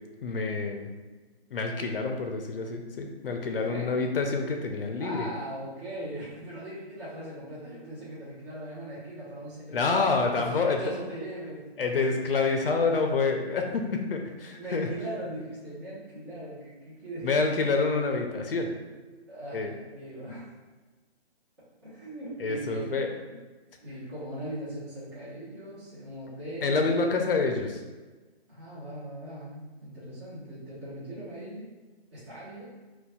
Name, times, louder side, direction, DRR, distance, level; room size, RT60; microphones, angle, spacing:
voice 1, 0.2-0.9 1.5-5.3 9.7-10.8 11.8-14.9 17.2-18.7 19.5-19.7 22.4-23.1 26.6-27.8, left 4 dB, 60° left, 3 dB, 0.5 m, -27 dB
voice 2, 3.6-4.0 4.8-9.9 10.3-12.0 12.8-12.9 14.6-17.7 19.3-20.5 21.8-22.9 23.3-23.4 23.8-27.2 28.5-31.7 32.1-32.7, right 1 dB, 25° right, -12 dB, 0.8 m, -40 dB
3.9 x 2.3 x 2.2 m, 1.3 s
hypercardioid pair, 165°, 32 cm